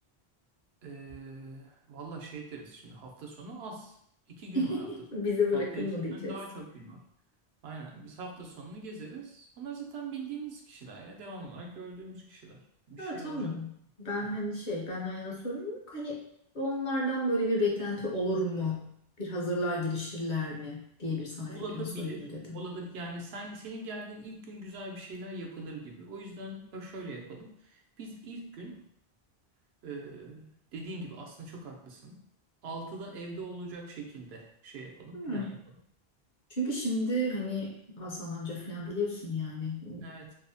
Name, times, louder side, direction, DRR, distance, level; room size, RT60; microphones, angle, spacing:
voice 1, 0.8-3.9 4.3-4.9 5.5-7.0 7.6-13.6 14.2-14.3 21.5-22.3 22.5-28.9 29.8-32.2 32.6-35.6 40.0-40.3, right 2 dB, 85° right, 1 dB, 0.8 m, -42 dB
voice 2, 4.5-6.4 13.0-13.7 14.0-16.2 16.5-18.9 19.2-22.6 35.1-35.5 36.6-40.0, left 1 dB, 55° left, -2 dB, 0.7 m, -32 dB
2.7 x 2.0 x 2.6 m, 0.71 s
omnidirectional pair, 1.1 m